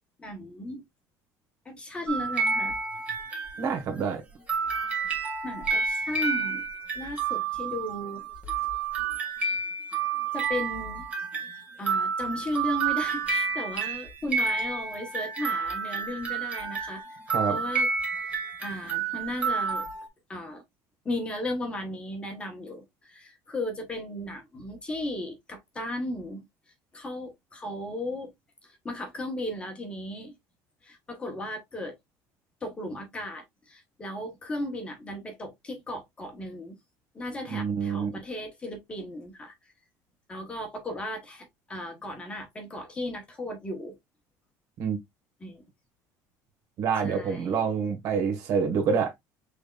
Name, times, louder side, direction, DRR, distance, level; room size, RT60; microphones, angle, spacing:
voice 1, 0.2-0.8 1.6-2.8 5.4-6.7 6.9-8.3 10.3-11.1 11.8-17.2 17.5-17.9 18.3-19.9 20.3-20.6 21.0-26.5 26.9-28.3 28.6-30.3 30.8-31.9 32.6-36.8 37.1-39.5 40.3-44.0 45.4-45.6 47.0-47.6, left 1 dB, 15° left, 1.0 m, -35 dB
sound 1, 2.1-4.0 4.5-20.1, right 5 dB, 20° right, 1.6 m, -30 dB
voice 2, 3.6-4.2 17.3-17.6 37.5-38.1 44.8-45.0 46.8-49.1, right 6 dB, 50° right, 1.6 m, -27 dB
6.2 x 3.5 x 2.3 m
cardioid pair, 180°, 7 cm